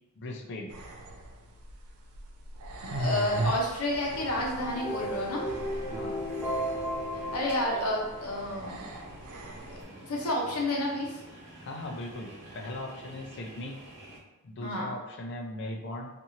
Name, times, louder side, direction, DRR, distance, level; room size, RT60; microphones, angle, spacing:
voice 1, 0.2-0.7 5.9-6.3 11.6-13.7 14.4-16.1, left 1 dB, 55° left, 2 dB, 0.4 m, -39 dB
sound 1, 0.7-9.8, right 2 dB, 75° right, 0.4 m, -39 dB
voice 2, 2.9-5.5 7.1-8.8 10.1-11.2 14.6-14.9, left 1 dB, 75° left, -2 dB, 0.8 m, -30 dB
sound 2, 3.9-14.2, right 1 dB, 55° right, 1.0 m, -48 dB
sound 3, 4.4-8.7, equal, 10° right, 0.7 m, -35 dB
2.7 x 2.6 x 2.8 m, 1.0 s
head